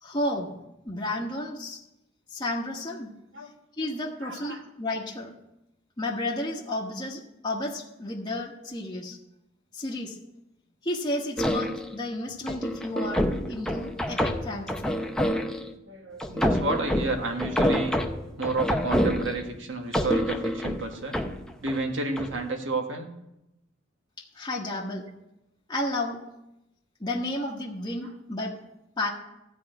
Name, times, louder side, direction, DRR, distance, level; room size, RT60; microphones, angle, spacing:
voice 1, 0.0-0.5 0.8-1.8 2.3-3.1 3.8-5.3 6.0-9.2 9.7-10.2 10.8-14.9 24.2-25.1 25.7-26.2 27.0-28.6 29.0-29.1, left 1 dB, 20° left, -3 dB, 1.2 m, -32 dB
voice 2, 4.2-4.6 15.8-17.9 18.4-21.2 21.6-23.1, right 3 dB, 70° right, 3 dB, 1.6 m, -31 dB
sound 1, 11.4-12.0 12.5-15.7 16.2-19.6 19.9-21.8 22.2-22.4, equal, 5° left, 0.7 m, -27 dB
14.0 x 4.8 x 9.0 m, 0.89 s
head